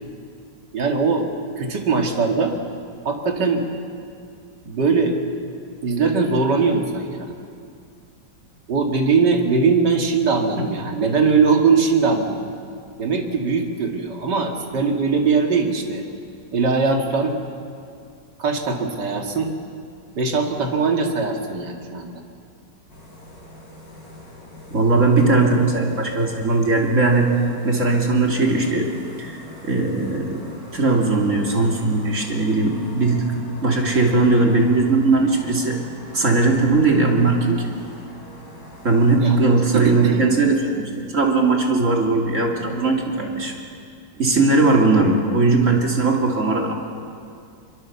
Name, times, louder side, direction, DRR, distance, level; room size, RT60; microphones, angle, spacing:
voice 1, 0.7-1.3 1.6-2.6 3.0-3.7 4.7-5.2 5.8-7.3 8.7-12.4 13.0-16.1 16.5-17.4 18.4-19.5 20.2-22.2 39.2-39.4 39.7-40.2, right 4 dB, 65° right, 2 dB, 2.7 m, -20 dB
sound 1, 22.9-40.2, left 1 dB, 55° left, 5.9 m, -42 dB
voice 2, 24.7-27.3 27.6-28.9 29.2-30.4 30.7-33.3 33.6-35.8 36.1-37.7 38.8-43.5 44.2-46.7, right 3 dB, 40° right, 0 dB, 3.1 m, -19 dB
23.5 x 23.5 x 7.1 m, 2.3 s
omnidirectional pair, 2.0 m